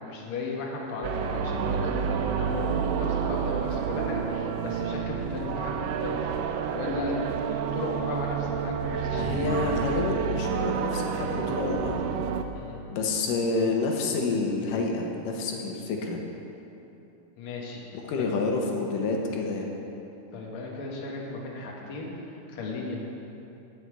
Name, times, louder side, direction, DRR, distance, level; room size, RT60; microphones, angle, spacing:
voice 1, 0.0-6.3 6.7-7.2 7.7-9.2 12.5-12.8 17.4-17.8 18.2-18.3 20.3-22.1 22.5-23.0, left 3 dB, 50° left, -2 dB, 1.9 m, -35 dB
sound 1, 1.0-12.4, right 7 dB, 80° right, 2.1 m, -29 dB
voice 2, 9.1-12.1 12.9-16.2 17.9-19.7, left 3 dB, 90° left, 1 dB, 2.6 m, -28 dB
11.0 x 5.7 x 8.3 m, 2.9 s
omnidirectional pair, 3.8 m